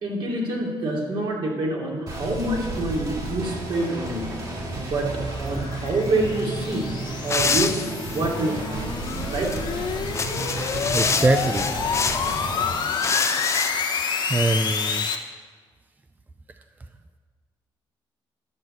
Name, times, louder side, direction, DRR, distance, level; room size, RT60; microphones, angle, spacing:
voice 1, 0.0-4.2 4.7-7.0 7.2-7.8 8.1-8.9 9.3-9.5, right 2 dB, 65° right, -2 dB, 2.7 m, -26 dB
sound 1, 2.1-12.7, right 2 dB, 45° right, 3.1 m, -32 dB
sound 2, 4.4-15.2, left 6 dB, 55° left, 1.1 m, -29 dB
sound 3, 7.3-8.2 9.0-9.6 10.0-12.4 12.9-13.7, left 4 dB, 30° left, 0.7 m, -26 dB
voice 2, 10.9-11.7 14.3-15.1, right 2 dB, 20° right, 8 dB, 0.5 m, -23 dB
11.0 x 6.0 x 7.8 m, 1.5 s
cardioid pair, 95°, 9 cm